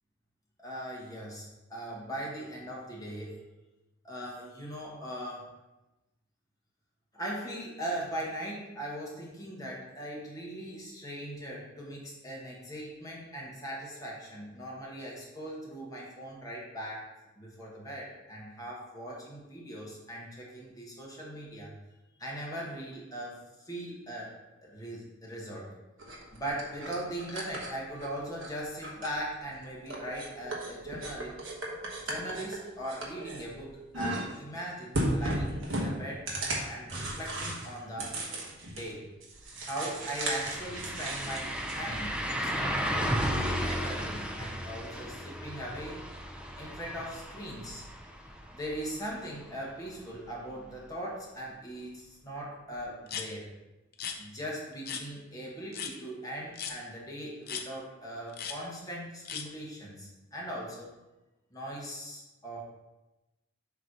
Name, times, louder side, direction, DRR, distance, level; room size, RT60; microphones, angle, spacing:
voice 1, 0.6-3.4 4.0-5.5 7.1-17.1 17.4-21.7 22.2-24.3 24.6-25.7 26.3-31.3 32.0-36.2 36.7-38.1 38.7-39.0 39.6-46.0 46.6-47.8 48.5-53.5 54.2-60.9 61.5-62.6, right 1 dB, 15° left, -4 dB, 1.4 m, -40 dB
sound 1, 26.0-28.5 28.8-29.5 29.9-33.6 33.9-34.6 34.9-38.9 39.2-41.8, right 1 dB, 70° right, 1.2 m, -36 dB
sound 2, 39.4-39.5 39.8-49.6 49.9-50.0 52.8-52.9, equal, 5° right, 0.5 m, -35 dB
sound 3, 53.1-53.3 53.9-54.2 54.9-55.0 55.7-55.9 56.5-56.8 57.5-57.6 58.3-58.6 59.2-59.4, left 7 dB, 50° left, 0.6 m, -36 dB
7.2 x 3.1 x 5.3 m, 1.0 s
head